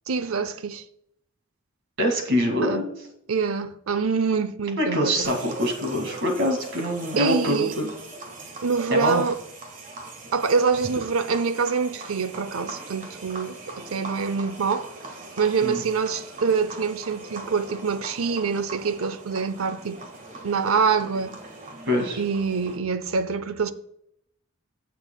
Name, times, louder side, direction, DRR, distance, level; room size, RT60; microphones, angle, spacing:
voice 1, 0.1-0.8 2.6-2.8 3.3-5.3 7.2-7.7 8.6-9.4 10.3-14.9 15.4-20.0 20.4-21.4 22.2-23.7, right 5 dB, 80° right, 0.7 m, -25 dB
voice 2, 2.0-2.8 4.8-7.9 8.9-9.2 15.6-15.8 21.8-22.2, equal, 60° right, 2.1 m, -24 dB
sound 1, 5.2-22.8, right 3 dB, 40° right, 1.7 m, -41 dB
15.5 x 6.9 x 2.3 m
head